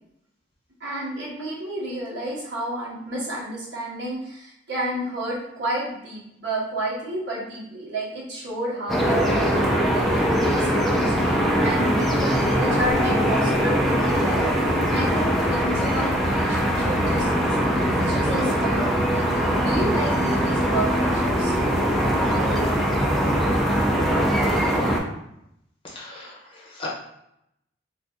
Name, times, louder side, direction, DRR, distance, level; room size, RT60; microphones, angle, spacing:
voice 1, 0.8-14.5 14.8-21.5, right 1 dB, 70° right, -6 dB, 1.3 m, -31 dB
sound 1, 8.9-25.0, equal, ahead, 0.4 m, -21 dB
voice 2, 25.8-26.9, left 3 dB, 30° left, -4 dB, 0.8 m, -38 dB
2.6 x 2.5 x 3.4 m, 0.80 s
head